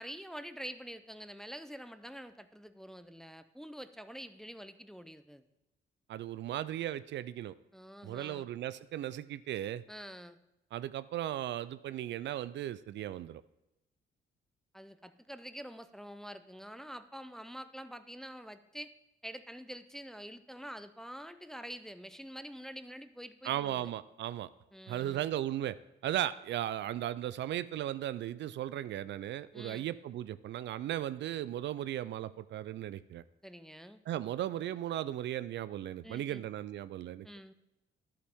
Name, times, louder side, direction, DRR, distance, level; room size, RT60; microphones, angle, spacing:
voice 1, 0.0-5.4 7.7-8.5 9.9-10.4 14.7-18.9 19.2-23.9 24.7-25.3 29.5-29.9 33.4-34.0 36.0-36.5 37.2-37.5, equal, ahead, 11 dB, 0.5 m, -46 dB
voice 2, 6.1-7.5 8.0-9.8 10.7-13.4 23.4-24.5 24.9-25.8 26.0-33.2 34.1-37.3, right 12 dB, 65° right, 16 dB, 0.4 m, -36 dB
10.5 x 8.5 x 3.6 m, 0.93 s
cardioid pair, 90°, 20 cm